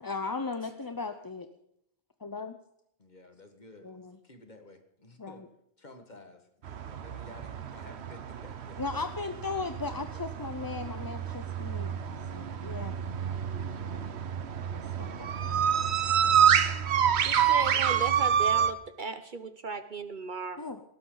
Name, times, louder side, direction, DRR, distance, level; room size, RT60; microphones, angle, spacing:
voice 1, 0.0-1.5 2.2-2.6 3.8-4.2 5.2-5.5 8.8-11.9 12.3-12.9 14.7-15.6 16.2-16.7 20.6-20.8, left 4 dB, 25° left, 8 dB, 0.6 m, -37 dB
voice 2, 3.0-3.9 4.2-5.4 5.8-9.0 9.7-10.2, left 1 dB, 40° left, 6 dB, 1.8 m, -52 dB
sound 1, 6.6-18.7, right 8 dB, 70° right, 1.1 m, -28 dB
voice 3, 17.2-20.6, right 4 dB, 50° right, 11 dB, 0.9 m, -36 dB
19.0 x 17.0 x 3.9 m, 0.76 s
omnidirectional pair, 1.2 m